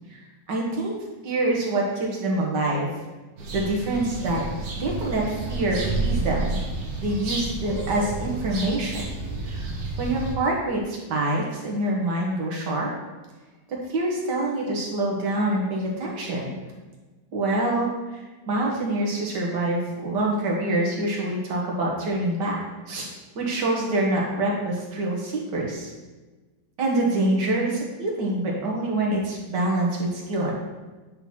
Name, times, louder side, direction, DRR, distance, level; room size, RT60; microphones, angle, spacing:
voice 1, 0.5-1.0 1.2-2.9 3.5-4.4 4.8-6.6 7.0-9.0 9.5-9.7 10.0-12.9 13.9-16.6 17.3-18.2 18.5-22.6 22.9-23.1 23.4-25.9 26.8-30.5, right 2 dB, 80° right, -2 dB, 2.1 m, -25 dB
sound 1, 3.4-10.3, right 2 dB, 60° right, 1.6 m, -30 dB
8.9 x 4.0 x 4.4 m, 1.2 s
omnidirectional pair, 1.8 m